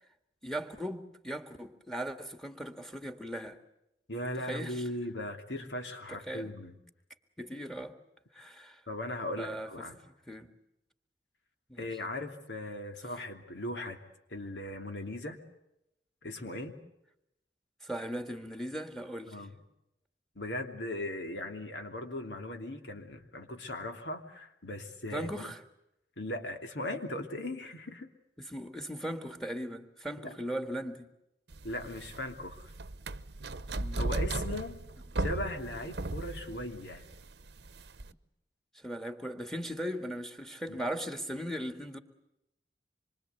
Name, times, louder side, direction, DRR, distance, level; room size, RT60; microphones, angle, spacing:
voice 1, 0.4-3.6 4.4-4.8 6.1-6.5 7.4-8.0 8.3-8.8 9.4-10.5 11.7-11.9 17.8-19.4 25.1-25.6 28.4-31.1 33.8-34.0 38.8-42.0, equal, ahead, 1.9 m, -38 dB
voice 2, 4.1-6.7 8.9-9.9 11.8-14.0 14.3-15.4 16.2-16.8 19.3-19.5 20.4-25.5 26.2-28.1 30.2-30.4 31.6-32.7 34.0-34.8 35.2-37.0 40.7-40.8, left 1 dB, 80° left, 2.9 m, -38 dB
sound 1, 31.5-38.1, right 2 dB, 65° right, 0.9 m, -36 dB
26.0 x 24.5 x 8.2 m
head